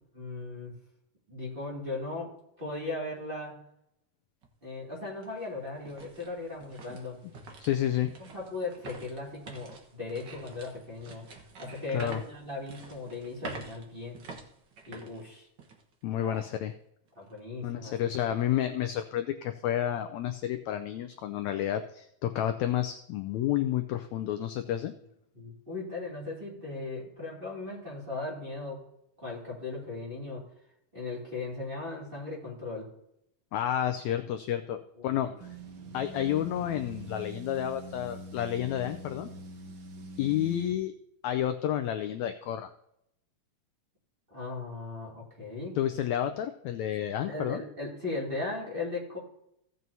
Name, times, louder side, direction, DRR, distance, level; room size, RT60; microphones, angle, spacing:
voice 1, 0.2-0.7 1.3-3.6 4.6-7.2 8.2-11.2 11.6-14.2 14.9-15.5 16.2-16.4 17.2-18.3 25.3-28.8 29.2-30.5 30.9-32.9 35.0-35.3 35.7-36.0 44.3-45.8 47.3-49.2, left 3 dB, 20° right, -5 dB, 2.1 m, -38 dB
sound 1, 4.4-4.5 5.0-15.9 16.3-16.5 17.1-17.4, right 3 dB, 60° right, 1.2 m, -47 dB
voice 2, 7.6-8.1 11.9-12.2 16.0-16.7 17.6-24.9 33.5-35.3 35.9-39.3 40.2-40.9 41.2-42.7 45.7-47.6, left 11 dB, 80° left, 8 dB, 1.6 m, -30 dB
sound 2, 35.4-40.8, right 2 dB, 90° right, 1.0 m, -44 dB
16.5 x 7.6 x 2.7 m, 0.78 s
omnidirectional pair, 3.8 m